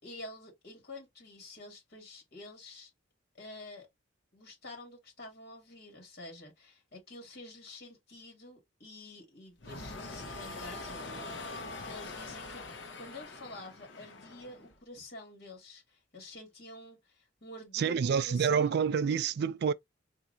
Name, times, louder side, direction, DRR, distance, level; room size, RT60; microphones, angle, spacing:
voice 1, 0.0-2.9 3.3-3.9 4.3-12.6 13.0-18.8, left 2 dB, 55° left, 2.3 m, -48 dB
sound 1, 9.6-14.8, left 3 dB, 75° left, 1.0 m, -43 dB
voice 2, 17.7-19.7, right 7 dB, 60° right, 0.3 m, -28 dB
4.7 x 2.8 x 2.7 m
head